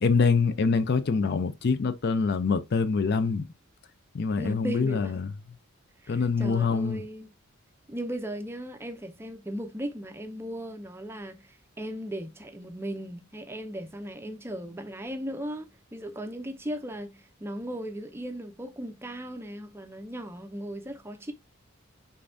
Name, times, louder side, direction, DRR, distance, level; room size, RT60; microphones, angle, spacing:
voice 1, 0.0-3.4 4.1-5.3 6.1-7.0, left 4 dB, 50° left, 0.4 m, -25 dB
voice 2, 4.4-5.2 6.0-7.3 7.9-21.3, right 1 dB, 10° right, 0.5 m, -37 dB
5.4 x 3.4 x 2.6 m
head